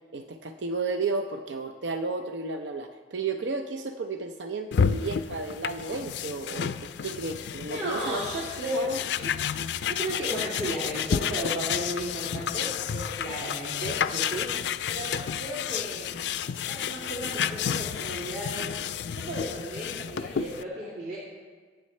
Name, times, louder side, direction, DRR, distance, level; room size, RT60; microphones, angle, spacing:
voice 1, 0.1-8.2 8.7-9.0, right 3 dB, 85° right, 6 dB, 0.6 m, -33 dB
sound 1, 4.7-20.6, left 8 dB, 70° left, 0.4 m, -31 dB
voice 2, 7.7-8.9 9.1-9.3 9.7-16.3 16.7-18.7 19.1-21.2, right 1 dB, 65° right, -8 dB, 2.6 m, -35 dB
23.0 x 8.2 x 3.2 m, 1.5 s
head